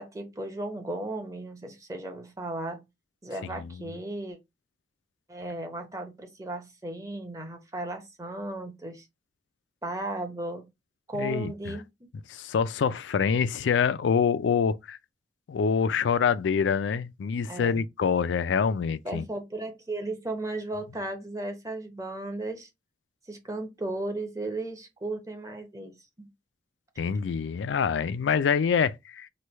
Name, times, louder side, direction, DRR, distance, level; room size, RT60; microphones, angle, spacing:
voice 1, 0.0-2.8 3.2-4.4 5.3-9.1 9.8-10.7 11.1-11.8 17.4-17.8 19.0-22.7 23.3-25.9 26.2-26.3, right 2 dB, 20° right, 0.8 m, -35 dB
voice 2, 11.2-11.5 12.3-15.0 15.5-19.3 27.0-29.3, left 6 dB, 90° left, 0.4 m, -25 dB
3.2 x 2.2 x 4.2 m
head